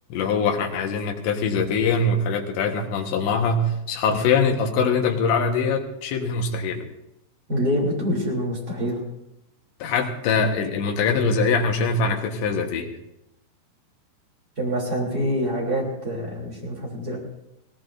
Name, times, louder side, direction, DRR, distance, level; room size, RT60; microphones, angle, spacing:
voice 1, 0.1-6.8 9.8-12.9, left 4 dB, 75° left, 3 dB, 3.6 m, -23 dB
voice 2, 7.5-9.0 14.6-17.2, equal, 20° right, -2 dB, 3.3 m, -26 dB
21.5 x 18.0 x 2.7 m, 0.88 s
omnidirectional pair, 5.3 m